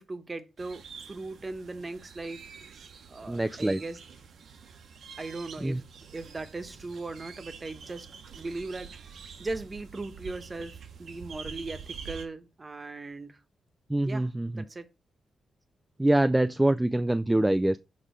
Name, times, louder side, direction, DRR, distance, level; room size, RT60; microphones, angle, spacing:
voice 1, 0.0-2.4 3.1-4.0 5.2-5.8 6.1-8.1 8.3-13.4 14.0-14.3 14.6-14.9, right 3 dB, 30° right, 1.1 m, -38 dB
sound 1, 0.6-12.3, right 6 dB, 70° right, 1.0 m, -46 dB
voice 2, 3.3-3.8 5.6-5.8 13.9-14.6 16.0-17.8, right 1 dB, 10° right, 0.3 m, -25 dB
6.4 x 3.7 x 5.1 m
cardioid pair, 80°, 0 cm